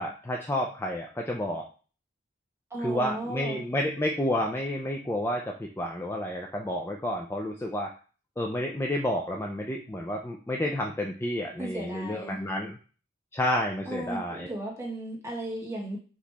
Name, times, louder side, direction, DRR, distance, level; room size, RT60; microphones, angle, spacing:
voice 1, 0.0-1.7 2.8-7.9 8.4-12.8 13.3-14.5, left 1 dB, 10° left, 1 dB, 0.4 m, -30 dB
voice 2, 2.7-3.6 11.6-12.4 13.8-16.0, right 1 dB, 15° right, -3 dB, 1.3 m, -35 dB
4.9 x 3.0 x 3.3 m, 0.37 s
head